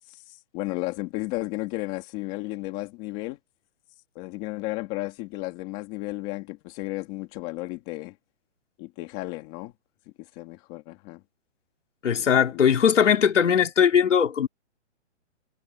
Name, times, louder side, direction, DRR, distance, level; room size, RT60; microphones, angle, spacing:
voice 1, 0.5-3.4 4.2-8.2 8.8-9.7 10.4-11.2 12.5-12.6, left 20 dB, 20° left, 2.4 m, -33 dB
voice 2, 12.0-14.5, left 8 dB, 75° left, 3.6 m, -20 dB
hypercardioid pair, 175°, 36 cm